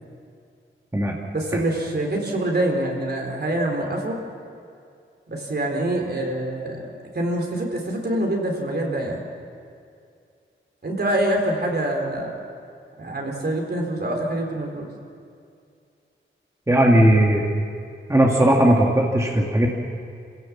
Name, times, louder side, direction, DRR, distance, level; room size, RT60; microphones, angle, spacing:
voice 1, 1.3-4.2 5.3-6.8 7.1-9.2 10.8-12.3 13.0-14.9, right 1 dB, 50° right, 1 dB, 3.9 m, -25 dB
voice 2, 16.7-17.4 18.1-19.7, right 1 dB, 15° right, -1 dB, 2.1 m, -17 dB
27.5 x 16.5 x 7.4 m, 2.4 s
wide cardioid pair, 120°, 21 cm